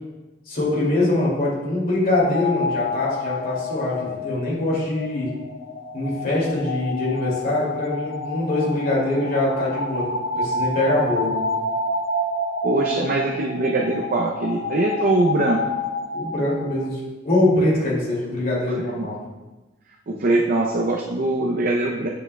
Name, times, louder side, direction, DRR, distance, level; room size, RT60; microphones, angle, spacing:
voice 1, 0.5-5.3 5.9-11.3 16.1-17.0 17.2-19.2, left 1 dB, 50° left, -5 dB, 2.4 m, -23 dB
sound 1, 2.2-16.9, left 2 dB, 70° left, 0.6 m, -29 dB
voice 2, 12.6-15.6 19.0-19.1 20.1-22.1, right 2 dB, 45° right, 0 dB, 0.6 m, -22 dB
8.3 x 6.9 x 2.2 m, 1.1 s
head